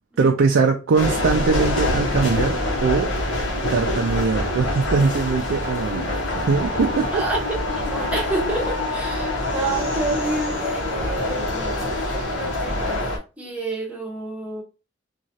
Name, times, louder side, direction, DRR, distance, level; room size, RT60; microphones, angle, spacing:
voice 1, 0.2-3.1 3.7-7.2, right 4 dB, 85° right, 0.4 m, -21 dB
sound 1, 1.0-13.2, left 1 dB, 85° left, 0.9 m, -25 dB
voice 2, 7.1-13.1 13.4-14.6, right 2 dB, 5° right, 0.7 m, -29 dB
3.0 x 2.3 x 2.7 m
head